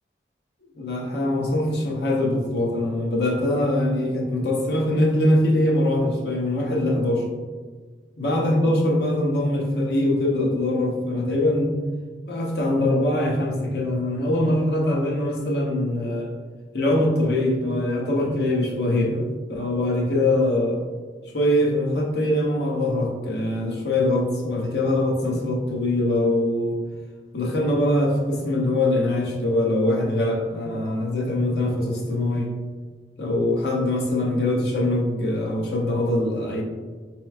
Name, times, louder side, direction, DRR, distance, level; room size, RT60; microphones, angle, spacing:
voice 1, 0.8-7.2 8.2-11.8 12.3-16.3 16.7-20.8 21.3-26.8 27.3-32.5 33.2-36.6, left 1 dB, 70° left, -2 dB, 0.7 m, -23 dB
4.2 x 2.8 x 2.4 m, 1.5 s
head